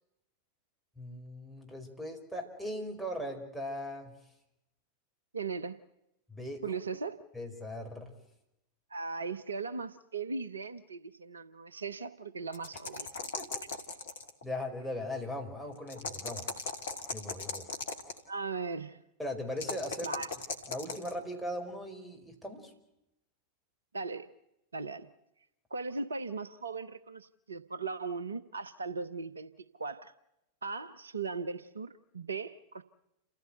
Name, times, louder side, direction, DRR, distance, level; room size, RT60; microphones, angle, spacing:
voice 1, 1.0-4.1 6.3-6.6 7.3-8.1 13.4-13.5 14.4-16.5 17.1-17.7 19.2-20.1 20.7-22.7, left 1 dB, 5° right, 5.0 m, -39 dB
voice 2, 5.3-5.8 6.6-7.2 8.9-13.1 18.3-19.0 20.0-20.3 23.9-24.3 24.7-25.1 25.7-30.1 30.6-32.8, right 4 dB, 75° right, 0.9 m, -38 dB
sound 1, 12.5-14.4 15.9-18.2 19.6-21.1, left 4 dB, 65° left, 2.1 m, -38 dB
29.0 x 15.0 x 7.9 m
figure-of-eight pair, 90°, 0 cm